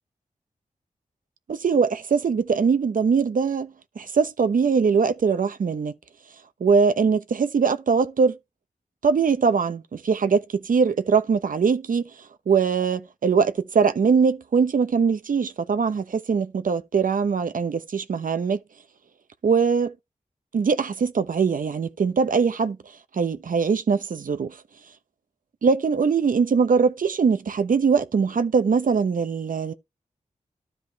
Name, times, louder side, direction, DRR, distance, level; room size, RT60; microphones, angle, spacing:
voice 1, 1.5-5.9 6.6-8.4 9.0-12.0 12.5-18.6 19.4-19.9 20.5-22.8 23.1-24.6 25.6-29.7, right 5 dB, 75° right, 0.9 m, -22 dB
13.0 x 5.2 x 3.1 m
wide cardioid pair, 80°, 14 cm